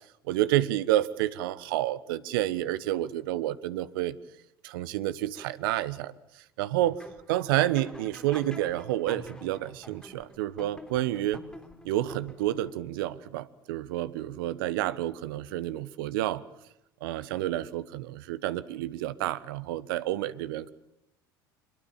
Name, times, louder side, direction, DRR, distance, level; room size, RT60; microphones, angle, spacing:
voice 1, 0.2-4.2 4.6-7.0 7.3-11.4 11.8-16.4 17.0-20.7, right 14 dB, 70° right, 16 dB, 1.3 m, -29 dB
sound 1, 6.8-12.7, left 1 dB, 5° left, 3.8 m, -47 dB
26.0 x 22.0 x 7.3 m, 0.82 s
hypercardioid pair, 70°, 12 cm